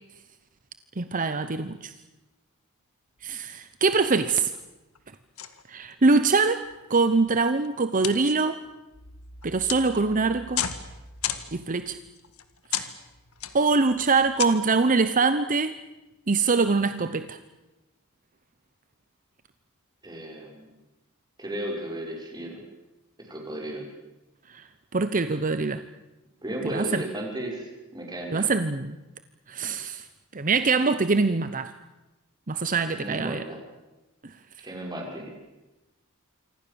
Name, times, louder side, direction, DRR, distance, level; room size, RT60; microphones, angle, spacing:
voice 1, 1.0-1.9 3.2-4.5 5.7-6.6 6.9-8.6 9.4-10.7 11.5-12.0 12.7-12.9 13.5-15.7 16.3-17.4 24.5-24.6 24.9-25.8 26.7-27.0 28.3-29.0 29.5-30.0 30.3-31.7 32.5-33.4, right 4 dB, 40° right, 11 dB, 0.9 m, -23 dB
sound 1, 3.2-3.6 3.9-4.1 4.3-5.1 5.4-5.9 6.5-14.5, left 9 dB, 75° left, 1.9 m, -35 dB
voice 2, 20.0-20.7 21.4-22.6 23.2-23.8 26.4-27.7 27.9-28.5 32.9-33.6 34.6-35.3, right 1 dB, 20° right, 0 dB, 6.3 m, -34 dB
27.5 x 25.0 x 7.1 m, 1.0 s
head